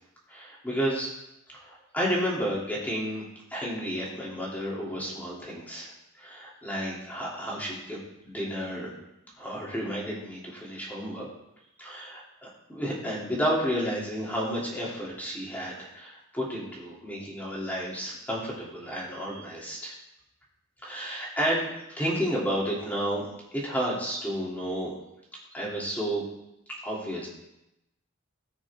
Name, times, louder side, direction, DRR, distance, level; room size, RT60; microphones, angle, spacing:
voice 1, 0.3-1.1 1.5-8.9 9.4-11.3 11.8-19.9 20.8-23.2 23.5-24.9 25.5-26.2 26.8-27.3, equal, 10° left, -5 dB, 3.0 m, -31 dB
19.0 x 6.3 x 3.7 m, 0.88 s
head